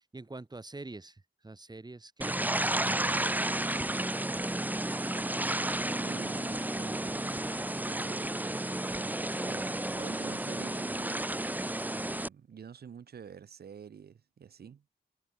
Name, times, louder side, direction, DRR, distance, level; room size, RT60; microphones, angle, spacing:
voice 1, 0.0-3.3, right 2 dB, 25° right, 5.2 m, -46 dB
sound 1, 2.2-12.3, right 1 dB, 10° right, 1.1 m, -32 dB
voice 2, 6.0-7.5 7.9-8.6 8.9-9.2 9.4-11.3 11.9-14.8, right 7 dB, 80° right, 2.2 m, -48 dB
wide cardioid pair, 95°, 16 cm